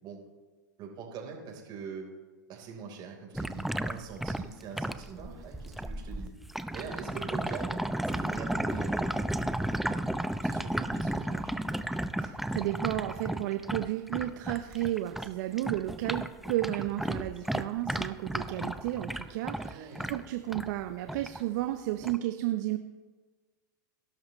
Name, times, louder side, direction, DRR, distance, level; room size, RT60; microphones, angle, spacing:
voice 1, 0.8-2.1 2.5-6.3 6.7-10.1 10.4-11.5 19.5-20.2, right 6 dB, 40° right, 1 dB, 3.9 m, -43 dB
sound 1, 3.3-15.3 15.6-20.7 21.1-21.4 22.0-22.2, right 1 dB, ahead, 0.5 m, -33 dB
voice 2, 12.2-22.8, right 15 dB, 60° right, 8 dB, 0.8 m, -33 dB
18.0 x 12.0 x 3.2 m, 1.4 s
hypercardioid pair, 110°, 11 cm